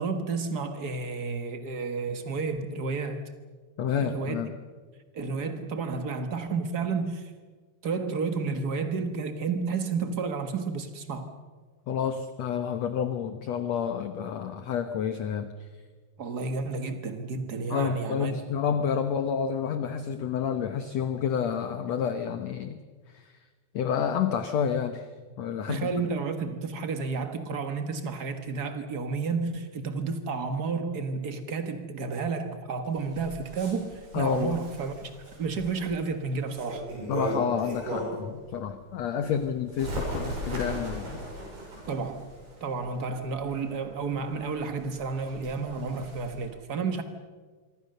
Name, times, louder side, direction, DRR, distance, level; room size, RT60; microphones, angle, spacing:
voice 1, 0.0-3.3 4.0-4.4 5.1-7.3 7.8-11.4 16.2-18.4 25.7-36.9 41.9-42.3 42.6-47.0, right 4 dB, 90° right, 0.8 m, -31 dB
voice 2, 3.8-4.5 11.9-15.5 17.7-22.8 23.1-23.3 23.7-25.1 25.4-25.9 34.1-34.5 37.1-41.2, left 7 dB, 65° left, 1.8 m, -29 dB
Bird, 32.9-38.3 38.8-46.5, right 1 dB, 65° right, 8.8 m, -38 dB
26.0 x 24.5 x 6.7 m
omnidirectional pair, 4.2 m